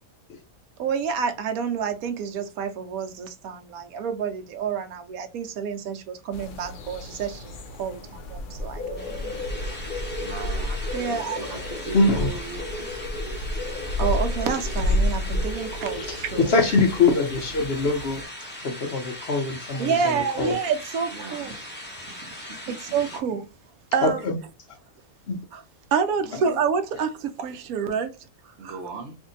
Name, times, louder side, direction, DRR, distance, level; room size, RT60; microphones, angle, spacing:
voice 1, 0.8-9.1 10.9-11.4 14.0-16.6 19.8-21.6 22.7-23.5 23.9-24.2 25.5-25.6 25.9-28.1 28.6-28.8, right 6 dB, 90° right, 1.1 m, -28 dB
sound 1, 6.3-18.2, left 1 dB, 85° left, 0.4 m, -31 dB
sound 2, 9.0-23.2, left 1 dB, 10° left, 0.7 m, -40 dB
voice 2, 9.1-9.5 10.2-12.9 21.1-21.4 22.7-22.8 26.3-26.4 28.6-29.2, right 4 dB, 60° right, 0.9 m, -39 dB
voice 3, 11.9-12.3 16.4-18.2 18.6-20.6 24.0-24.4 25.3-25.4 26.5-26.6, left 3 dB, 55° left, 0.8 m, -23 dB
2.7 x 2.6 x 3.8 m
omnidirectional pair, 1.5 m